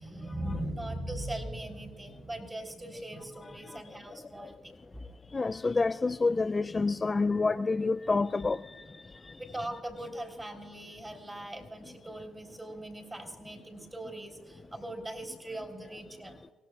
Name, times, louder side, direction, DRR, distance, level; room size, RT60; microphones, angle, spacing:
voice 1, 0.0-4.7 9.4-16.4, right 1 dB, 15° right, 3 dB, 3.8 m, -40 dB
voice 2, 5.3-8.8 9.2-9.3, left 3 dB, 25° left, 11 dB, 0.3 m, -28 dB
29.0 x 17.5 x 2.4 m, 1.5 s
cardioid pair, 90°, 0 cm